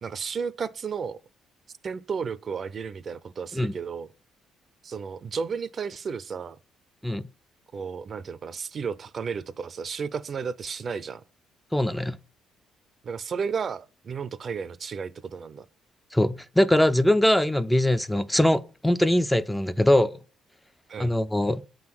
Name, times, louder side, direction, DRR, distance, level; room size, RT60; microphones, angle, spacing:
voice 1, 0.0-1.2 1.8-4.1 4.8-6.6 7.7-11.2 13.0-15.7 20.9-21.1, right 6 dB, 45° right, 0.5 m, -33 dB
voice 2, 11.7-12.2 16.1-20.2 21.0-21.6, left 1 dB, 5° left, 0.4 m, -22 dB
7.2 x 3.8 x 6.0 m
cardioid pair, 90°, 0 cm